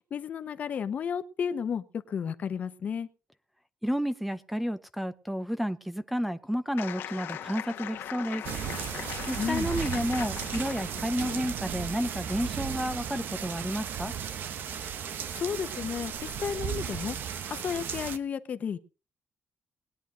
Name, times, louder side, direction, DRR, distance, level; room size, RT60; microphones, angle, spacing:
voice 1, 0.1-3.1 9.4-9.7 15.3-17.2 17.5-18.8, left 7 dB, 45° left, 1.0 m, -32 dB
voice 2, 3.8-8.4 9.3-14.1, equal, ahead, 0.6 m, -31 dB
sound 1, 6.8-11.5, left 10 dB, 85° left, 1.6 m, -40 dB
sound 2, 8.4-18.2, right 8 dB, 65° right, 1.0 m, -35 dB
20.0 x 10.0 x 3.9 m
cardioid pair, 170°, 4 cm